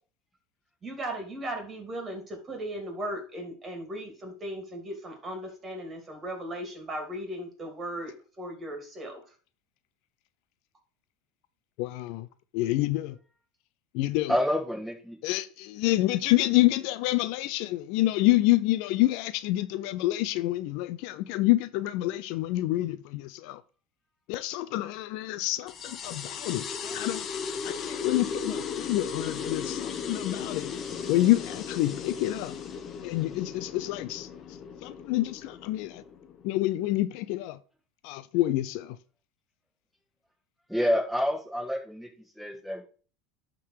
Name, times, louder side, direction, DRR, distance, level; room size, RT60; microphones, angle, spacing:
voice 1, 0.8-9.2, right 1 dB, 25° right, 3.1 m, -37 dB
voice 2, 11.8-12.3 12.5-13.2 13.9-14.3 15.2-23.6 24.3-27.2 27.6-30.7 31.1-32.6 33.0-34.3 34.8-36.0 36.4-37.6 38.0-39.0, left 17 dB, 65° left, 0.5 m, -27 dB
voice 3, 14.3-15.2 40.7-42.8, equal, ahead, 2.7 m, -28 dB
sound 1, 25.7-36.7, left 6 dB, 35° left, 0.9 m, -36 dB
11.0 x 3.8 x 4.8 m
supercardioid pair, 105°, 0 cm